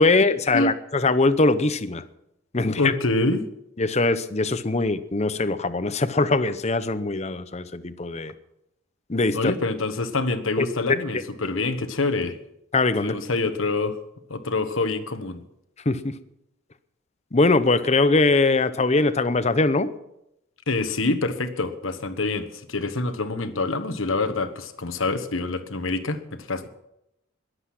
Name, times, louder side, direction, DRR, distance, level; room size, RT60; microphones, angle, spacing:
voice 1, 0.0-2.0 2.5-2.9 3.8-8.3 9.1-9.5 10.6-10.7 12.7-13.2 15.9-16.2 17.3-19.9, left 3 dB, 30° left, 13 dB, 0.7 m, -21 dB
voice 2, 2.6-3.5 9.3-12.4 13.0-14.0 14.3-15.4 20.7-26.7, left 3 dB, 75° left, 9 dB, 1.3 m, -26 dB
21.5 x 8.1 x 6.0 m, 0.83 s
head